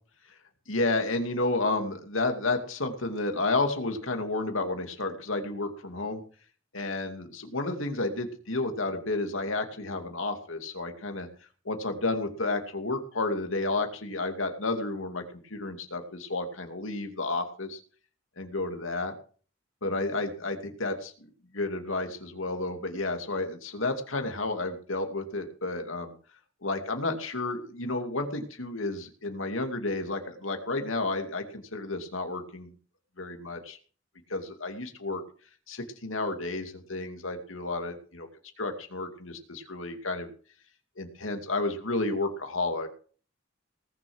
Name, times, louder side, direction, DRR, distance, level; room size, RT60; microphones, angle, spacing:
voice 1, 0.7-6.2 6.7-11.3 11.6-17.8 18.4-19.1 19.8-21.1 21.5-26.1 26.6-32.7 33.2-33.8 34.3-35.2 35.7-38.3 38.6-40.3 41.0-43.0, left 2 dB, 90° left, 5 dB, 2.5 m, -31 dB
19.0 x 7.1 x 6.3 m, 0.42 s
head